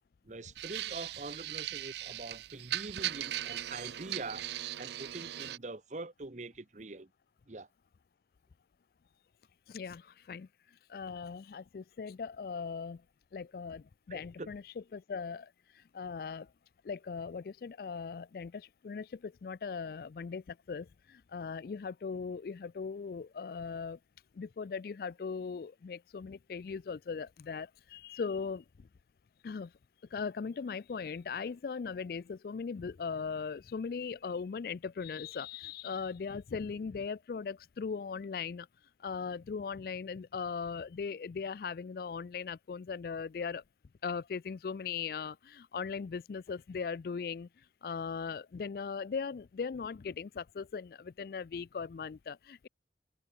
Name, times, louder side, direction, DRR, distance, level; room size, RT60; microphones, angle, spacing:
voice 1, 0.2-4.5 4.8-7.1 7.5-7.7 14.1-14.5, right 3 dB, 40° right, 0.9 m, -44 dB
sound 1, 0.6-5.6, right 13 dB, 70° right, 0.5 m, -39 dB
voice 2, 9.7-10.5 10.9-13.0 13.3-16.5 16.8-24.0 24.3-28.9 29.4-29.7 30.1-38.7 39.0-43.6 44.0-47.5 47.8-52.7, left 5 dB, 55° left, 0.4 m, -39 dB
head